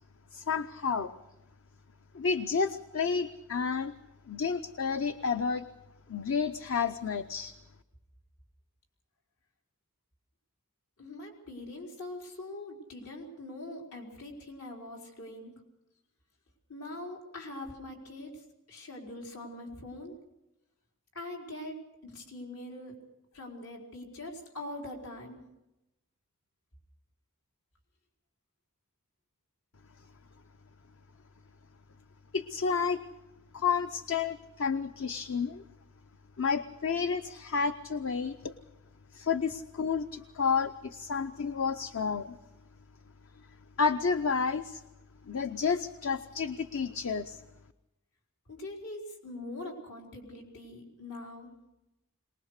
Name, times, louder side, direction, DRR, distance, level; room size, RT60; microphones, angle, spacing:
voice 1, 0.3-1.1 2.1-3.9 4.3-5.7 6.1-7.6 32.3-33.0 33.5-35.6 36.4-38.5 39.1-42.4 43.8-44.8 45.3-47.4, left 5 dB, 65° left, 10 dB, 0.7 m, -30 dB
voice 2, 11.0-15.5 16.7-18.3 18.7-20.1 21.1-21.8 22.0-22.9 23.3-25.4 48.5-51.5, left 1 dB, 85° left, -1 dB, 4.5 m, -43 dB
23.0 x 19.5 x 6.5 m, 0.93 s
head